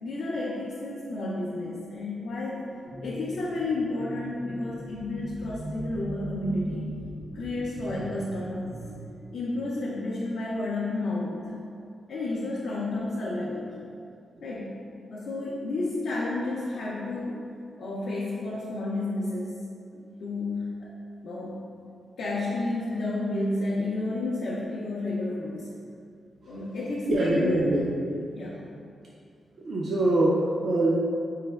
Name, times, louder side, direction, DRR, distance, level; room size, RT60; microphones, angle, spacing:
voice 1, 0.0-2.7 3.0-6.9 7.3-8.8 9.3-11.5 12.1-13.8 14.4-14.7 15.1-17.5 17.8-19.6 19.9-20.9 21.2-21.6 22.2-25.7 26.5-27.7 28.3-28.6, left 2 dB, 80° left, -5 dB, 0.4 m, -31 dB
sound 1, 2.8-9.1, right 1 dB, 80° right, 0.8 m, -39 dB
voice 2, 27.0-27.9 29.6-31.0, right 2 dB, 60° right, -5 dB, 0.4 m, -24 dB
4.2 x 3.1 x 2.2 m, 2.4 s
cardioid pair, 70°, 0 cm